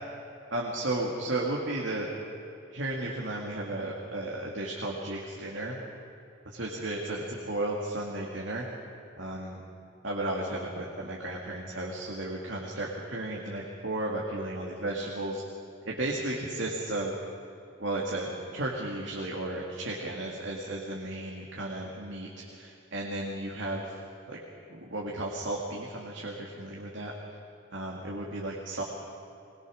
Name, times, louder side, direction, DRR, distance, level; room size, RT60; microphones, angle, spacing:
voice 1, 0.5-2.1 2.7-5.8 6.4-8.7 9.2-9.6 10.0-15.4 15.9-17.1 17.8-24.0 24.3-24.4 24.7-27.1 27.7-28.8, right 1 dB, 80° right, -2 dB, 2.3 m, -34 dB
21.5 x 21.0 x 6.5 m, 2.7 s
head